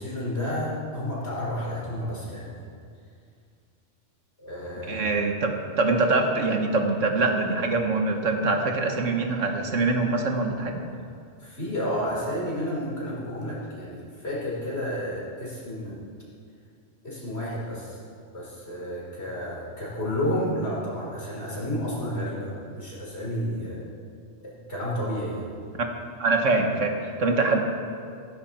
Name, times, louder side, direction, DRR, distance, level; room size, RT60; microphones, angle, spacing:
voice 1, 0.0-2.6 4.4-5.0 10.9-11.1 11.4-16.0 17.0-18.0 18.3-23.8 24.4-25.5, equal, 55° left, -6 dB, 4.7 m, -31 dB
voice 2, 4.9-10.8 25.8-25.9 26.2-27.6, right 3 dB, 90° right, 3 dB, 1.8 m, -24 dB
15.5 x 15.0 x 4.4 m, 2.3 s
omnidirectional pair, 1.3 m